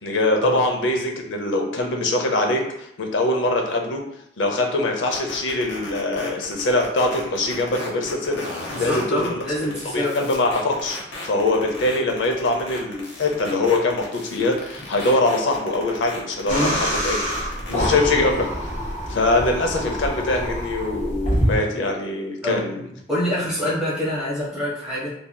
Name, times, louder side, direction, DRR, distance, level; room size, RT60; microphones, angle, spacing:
voice 1, 0.0-2.6 3.0-4.0 4.4-8.4 8.8-9.4 9.7-11.0 11.2-17.2 17.8-18.5 19.1-22.8, left 2 dB, 90° left, 3 dB, 0.6 m, -23 dB
sound 1, 5.1-17.9, left 2 dB, 70° left, 0.9 m, -36 dB
voice 2, 8.7-10.1 16.5-16.8 17.7-18.1 22.4-25.1, equal, 5° right, -8 dB, 1.1 m, -26 dB
sound 2, 16.5-21.5, equal, 40° left, 1.4 m, -26 dB
3.2 x 2.7 x 2.2 m, 0.78 s
head